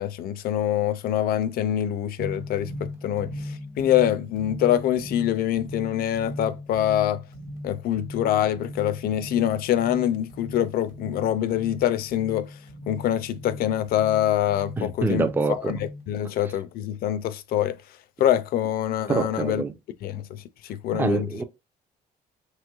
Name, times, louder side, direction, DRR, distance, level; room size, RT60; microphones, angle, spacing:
voice 1, 0.0-7.2 7.6-12.5 12.9-17.8 18.2-19.6 20.0-21.3, left 11 dB, 65° left, 0.4 m, -25 dB
sound 1, 2.2-16.1, left 1 dB, 55° right, 0.9 m, -39 dB
voice 2, 14.8-15.8 19.1-19.7 20.9-21.4, right 3 dB, 10° right, 0.3 m, -25 dB
3.0 x 3.0 x 2.3 m
cardioid pair, 110°, 17 cm